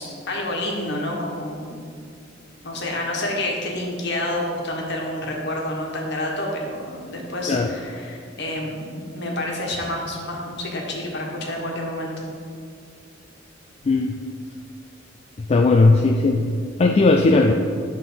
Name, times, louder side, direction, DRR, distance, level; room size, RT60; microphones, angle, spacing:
voice 1, 0.3-1.7 2.6-12.2, left 1 dB, 60° left, -1 dB, 1.4 m, -28 dB
voice 2, 15.4-16.5 16.8-17.5, left 3 dB, 30° left, 3 dB, 0.3 m, -17 dB
10.5 x 3.6 x 5.6 m, 2.3 s
head